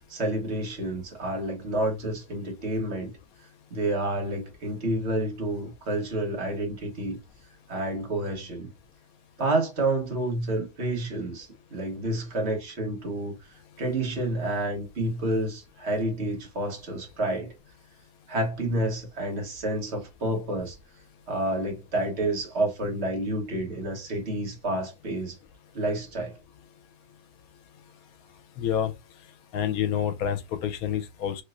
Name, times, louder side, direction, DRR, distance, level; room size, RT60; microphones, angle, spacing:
voice 1, 0.1-3.1 3.7-7.2 7.7-8.7 9.4-13.4 13.8-17.5 18.3-20.8 21.3-25.4 25.7-26.4, right 1 dB, 50° right, 1.4 m, -29 dB
voice 2, 28.6-28.9 29.5-31.4, left 9 dB, 85° left, 1.1 m, -28 dB
3.0 x 3.0 x 2.5 m
omnidirectional pair, 1.5 m